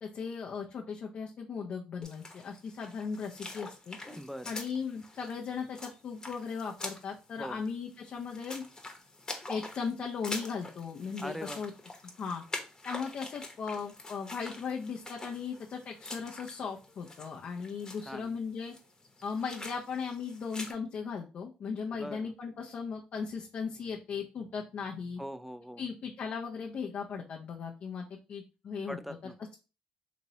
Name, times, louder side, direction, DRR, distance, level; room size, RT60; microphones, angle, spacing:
voice 1, 0.0-4.0 4.5-8.7 9.5-11.7 12.2-12.4 12.8-18.7 19.2-25.2 25.8-29.0, left 5 dB, 60° left, 0 dB, 0.5 m, -37 dB
sound 1, 2.0-20.7, left 2 dB, 25° left, 0.9 m, -45 dB
voice 2, 4.2-4.6 7.4-7.6 11.2-11.6 18.0-18.4 21.9-22.3 25.2-25.8 28.9-29.4, equal, ahead, 10 dB, 0.4 m, -41 dB
2.9 x 2.9 x 2.7 m, 0.32 s
supercardioid pair, 65°, 3 cm